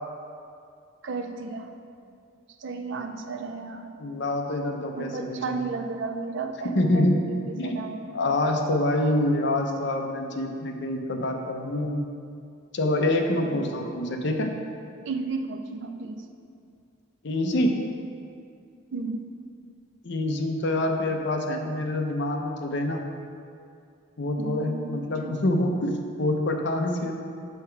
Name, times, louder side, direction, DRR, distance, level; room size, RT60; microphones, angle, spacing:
voice 1, 1.0-1.7 2.6-3.9 5.0-8.2 9.5-9.6 13.4-13.8 15.1-16.2 18.9-19.3 24.4-25.4, right 3 dB, 65° right, 6 dB, 0.5 m, -33 dB
voice 2, 4.0-5.6 6.8-7.2 7.5-7.8 8.1-12.0 12.7-14.5 17.2-17.7 20.0-23.0 24.2-27.1, left 1 dB, 60° left, 3 dB, 0.6 m, -26 dB
5.7 x 5.6 x 4.5 m, 2.4 s
head